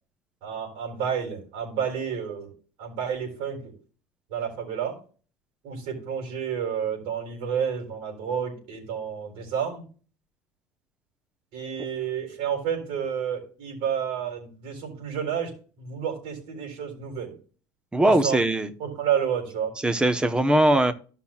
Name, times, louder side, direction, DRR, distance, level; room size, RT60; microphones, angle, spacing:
voice 1, 0.4-2.5 2.8-3.6 4.3-5.0 5.6-9.8 11.5-15.5 15.8-17.4 18.0-18.4 18.8-19.7, right 8 dB, 70° right, 2 dB, 4.1 m, -30 dB
voice 2, 17.9-18.7 19.8-20.9, right 1 dB, 10° right, 10 dB, 0.9 m, -20 dB
15.0 x 5.7 x 2.4 m, 0.38 s
cardioid pair, 135°, 10 cm